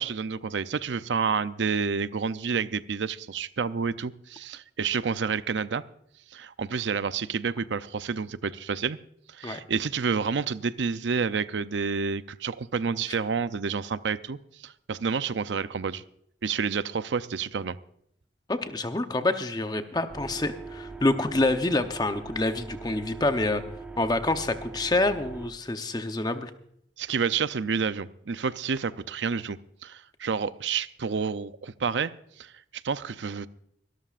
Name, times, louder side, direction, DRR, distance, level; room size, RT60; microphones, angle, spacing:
voice 1, 0.0-5.8 6.3-9.0 9.3-14.4 14.6-16.0 16.4-17.8 27.0-32.1 32.4-33.5, right 5 dB, 85° right, 14 dB, 0.5 m, -29 dB
voice 2, 18.5-23.6 24.0-26.5, left 2 dB, 20° left, 8 dB, 0.8 m, -27 dB
sound 1, 20.1-25.5, right 3 dB, 5° right, 0.9 m, -41 dB
24.5 x 13.0 x 2.5 m, 0.71 s
head